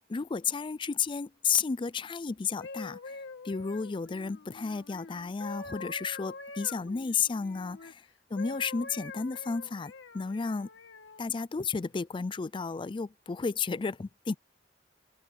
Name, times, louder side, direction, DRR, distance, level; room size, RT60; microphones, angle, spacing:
voice 1, 0.0-8.0 8.3-10.7 11.2-14.3, left 5 dB, 25° left, 0.4 m, -32 dB
sound 1, 2.4-7.9 8.4-11.2 11.9-12.2, left 3 dB, 85° left, 1.8 m, -45 dB
head